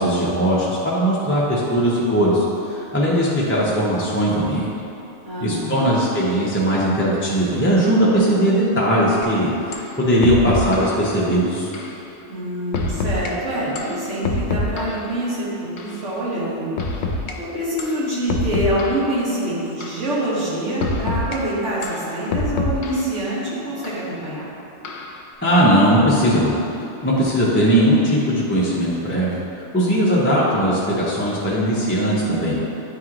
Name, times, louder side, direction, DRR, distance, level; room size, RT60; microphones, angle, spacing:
voice 1, 0.0-4.7 5.4-11.7 25.4-26.6 27.0-29.3 29.6-32.5, equal, 15° left, -7 dB, 0.6 m, -19 dB
voice 2, 5.2-5.9 12.3-24.5 30.2-30.5, right 1 dB, 75° right, -9 dB, 1.9 m, -26 dB
sound 1, 9.2-9.3 9.7-9.9 10.2-11.0 11.7-12.0 12.7-13.3 13.8-15.1 15.8-16.0 16.8-17.3 17.8-18.0 18.3-19.1 19.8-20.1 20.8-21.4 21.8-23.1 23.8-24.0 24.9-25.2, left 2 dB, 70° left, 0.8 m, -25 dB
9.0 x 3.1 x 3.7 m, 2.8 s
omnidirectional pair, 1.3 m